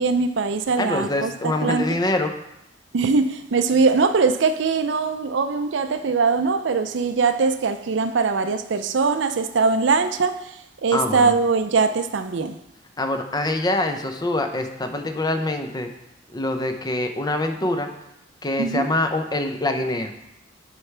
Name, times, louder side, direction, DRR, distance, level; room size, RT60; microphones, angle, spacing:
voice 1, 0.0-2.0 2.9-12.6 18.6-18.9, right 4 dB, 70° right, 0.5 m, -21 dB
voice 2, 0.8-2.3 10.9-11.3 13.0-15.9 16.3-17.9 18.4-20.1, left 2 dB, 20° left, 0.6 m, -24 dB
10.0 x 4.7 x 3.3 m
head